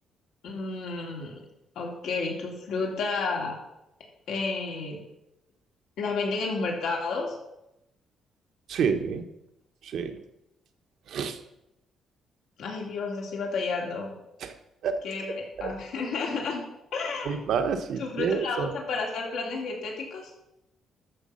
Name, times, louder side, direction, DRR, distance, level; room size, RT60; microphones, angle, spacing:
voice 1, 0.4-1.4 1.7-3.6 4.3-5.0 6.0-7.3 12.6-14.1 15.0-16.6 16.9-17.4 18.0-20.2, left 4 dB, 80° left, 0 dB, 2.9 m, -31 dB
voice 2, 8.7-9.3 9.8-10.2 11.1-11.4 14.4-14.5 14.8-15.0 15.6-15.7 17.2-18.7, right 6 dB, 70° right, 7 dB, 1.2 m, -28 dB
13.0 x 6.5 x 5.6 m, 0.87 s
cardioid pair, 90°, 0 cm